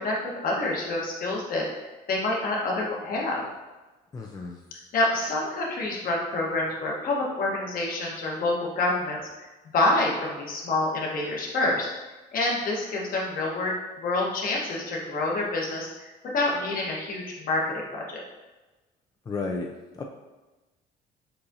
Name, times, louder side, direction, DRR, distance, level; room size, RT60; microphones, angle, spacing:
voice 1, 0.0-1.7 2.1-3.4 4.9-9.5 9.7-11.9 12.3-18.2, left 2 dB, 55° left, -2 dB, 1.2 m, -27 dB
voice 2, 4.1-4.6 19.2-20.0, left 3 dB, 20° left, 1 dB, 0.4 m, -33 dB
6.8 x 2.5 x 2.7 m, 1.1 s
cardioid pair, 110°, 17 cm